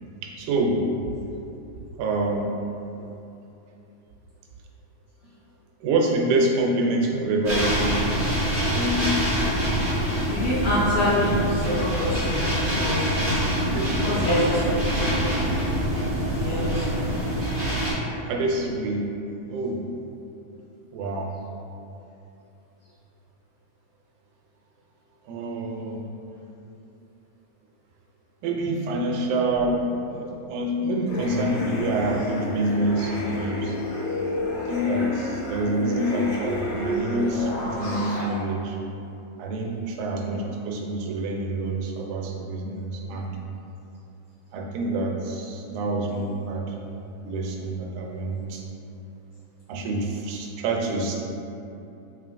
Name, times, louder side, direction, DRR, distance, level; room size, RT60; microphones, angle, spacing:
voice 1, 0.2-0.8 2.0-2.5 3.0-3.1 5.8-8.0 8.5-9.1 13.6-13.9 18.3-19.1 19.5-19.8 20.9-21.3 25.3-26.0 28.4-33.8 34.7-38.8 39.4-43.3 44.5-46.8 47.2-48.6 49.7-51.2, right 1 dB, 90° right, 0 dB, 2.0 m, -26 dB
sound 1, 7.4-17.9, equal, 55° right, 0.4 m, -25 dB
voice 2, 10.3-13.2 14.0-15.4 16.3-17.0, left 1 dB, 75° left, -11 dB, 1.4 m, -26 dB
sound 2, 31.1-38.2, left 1 dB, 90° left, 2.3 m, -30 dB
4.9 x 3.0 x 2.5 m, 2.8 s
omnidirectional pair, 3.4 m